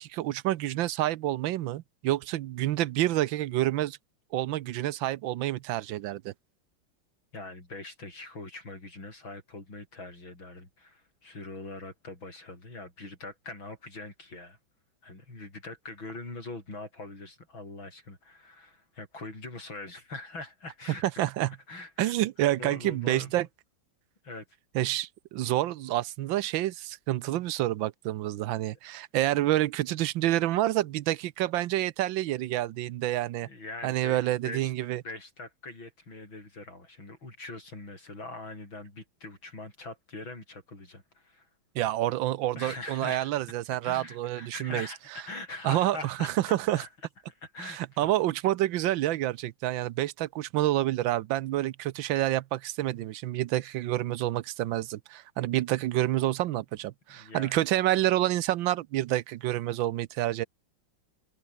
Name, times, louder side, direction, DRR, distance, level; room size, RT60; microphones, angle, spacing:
voice 1, 0.0-4.0 4.3-6.3 21.0-21.5 22.0-23.5 24.7-33.5 33.8-35.0 41.7-44.9 45.6-46.1 46.5-46.8 47.6-60.5, right 14 dB, 80° right, 1.4 m, -28 dB
voice 2, 7.3-14.6 15.0-21.1 21.7-22.2 22.6-23.5 24.2-24.4 33.4-34.7 35.0-41.5 42.5-43.3 43.8-46.9 47.4-48.1 57.1-57.6, left 2 dB, 85° left, 8.5 m, -42 dB
omnidirectional pair, 2.1 m